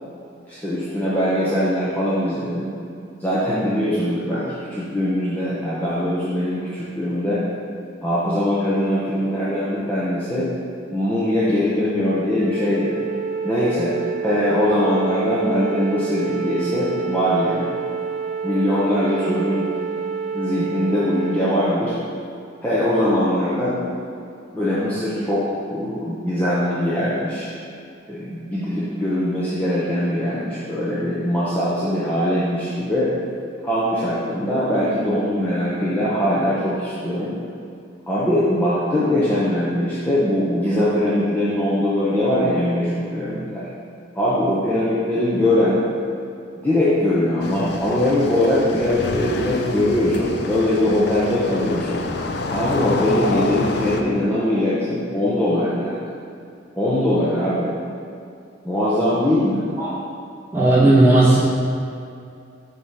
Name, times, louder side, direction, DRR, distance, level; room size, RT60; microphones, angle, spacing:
voice 1, 0.5-2.7 3.2-7.4 8.0-10.5 10.9-13.0 13.4-13.9 14.2-17.8 18.4-19.7 20.3-21.9 22.6-23.8 24.5-27.5 28.1-33.1 33.6-37.3 38.1-43.7 44.1-45.8 46.6-52.0 52.5-56.0 56.8-57.7 58.6-59.6, left 1 dB, 10° left, -11 dB, 0.8 m, -21 dB
Wind instrument woodwind instrument, 12.4-21.6, right 5 dB, 65° right, 1.0 m, -28 dB
sound 1, 47.4-54.0, left 3 dB, 55° left, 0.4 m, -28 dB
voice 2, 60.5-61.4, right 2 dB, 10° right, -9 dB, 1.5 m, -14 dB
7.0 x 3.0 x 5.1 m, 2.5 s
head